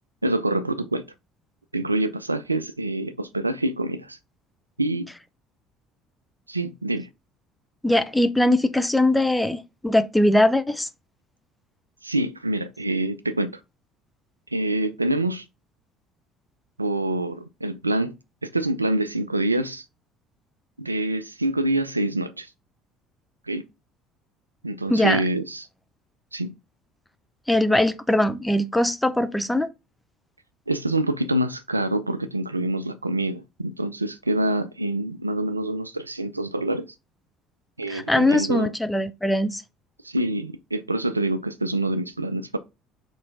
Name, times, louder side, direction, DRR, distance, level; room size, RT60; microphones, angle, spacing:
voice 1, 0.2-1.0 1.7-4.2 4.8-5.1 6.5-7.1 12.0-13.5 14.5-15.4 16.8-18.1 18.4-19.8 20.8-22.5 23.5-23.6 24.6-25.7 26.3-26.5 30.7-36.9 37.8-38.7 40.0-42.6, right 1 dB, 90° right, 0.3 m, -26 dB
voice 2, 7.8-10.9 24.9-25.2 27.5-29.7 37.9-39.6, left 1 dB, 5° left, 0.5 m, -21 dB
4.3 x 3.2 x 3.7 m
figure-of-eight pair, 60°, 0 cm